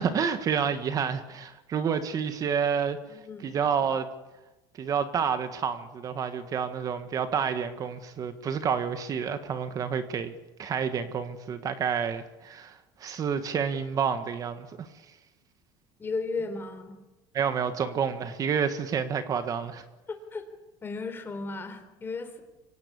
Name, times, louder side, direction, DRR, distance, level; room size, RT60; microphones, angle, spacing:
voice 1, 0.0-3.0 3.4-4.1 4.8-14.9 17.3-19.8, right 7 dB, 35° right, 9 dB, 1.6 m, -29 dB
voice 2, 3.1-3.5 16.0-17.0 20.1-20.4 20.8-22.4, left 3 dB, 20° left, 8 dB, 3.8 m, -35 dB
25.0 x 18.5 x 8.3 m, 1.0 s
cardioid pair, 135°, 11 cm